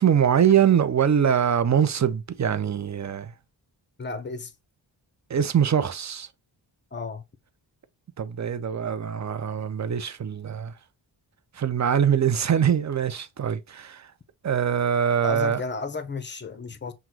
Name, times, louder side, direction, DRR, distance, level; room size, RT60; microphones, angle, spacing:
voice 1, 0.0-3.3 5.3-6.3 8.2-10.7 11.6-14.0 14.4-15.6, right 8 dB, 35° right, 0.6 m, -23 dB
voice 2, 4.0-4.5 6.9-7.2 15.2-16.9, left 4 dB, 25° left, 0.8 m, -33 dB
6.0 x 2.4 x 2.9 m
cardioid pair, 60°, 47 cm